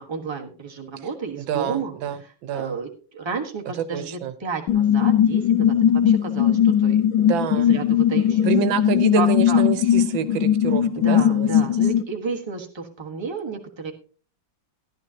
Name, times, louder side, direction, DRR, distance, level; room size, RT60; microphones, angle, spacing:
voice 1, 0.0-8.5 9.1-9.6 10.9-13.9, right 5 dB, 15° right, 2 dB, 1.2 m, -32 dB
voice 2, 1.5-2.8 3.9-4.3 7.2-7.7 8.4-11.5, right 9 dB, 85° right, 12 dB, 1.6 m, -27 dB
sound 1, 4.7-12.0, left 9 dB, 75° left, 1.4 m, -19 dB
14.0 x 11.0 x 2.8 m, 0.39 s
omnidirectional pair, 2.1 m